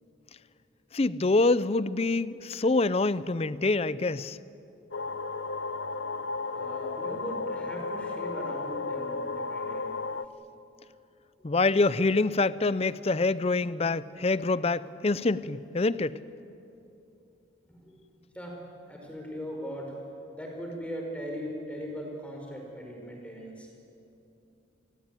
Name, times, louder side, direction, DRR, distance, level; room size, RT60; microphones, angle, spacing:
voice 1, 0.9-4.4 11.4-16.2, left 3 dB, 30° left, 0.6 m, -26 dB
sound 1, 4.9-10.2, left 3 dB, 70° left, 0.7 m, -34 dB
voice 2, 6.5-9.9 17.7-18.6 18.9-19.9 20.3-23.7, equal, 5° left, 5.0 m, -39 dB
28.5 x 19.5 x 9.1 m
head